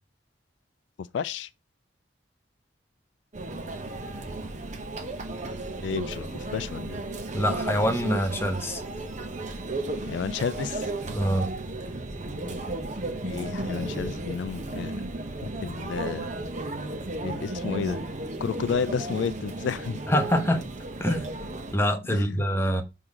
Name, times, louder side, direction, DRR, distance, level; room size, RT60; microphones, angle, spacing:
voice 1, 1.0-1.5 5.8-7.0 10.1-10.9 13.2-14.9 15.4-16.3 17.2-18.0 18.4-20.0 22.1-22.4, left 6 dB, 75° left, 0.3 m, -31 dB
Conversation / Chatter / Crowd, 3.3-21.8, right 2 dB, 40° right, 0.9 m, -34 dB
voice 2, 7.3-8.8 11.1-11.5 20.1-20.6 21.0-21.2 21.7-22.8, equal, 15° left, 0.9 m, -25 dB
6.2 x 3.7 x 4.8 m
head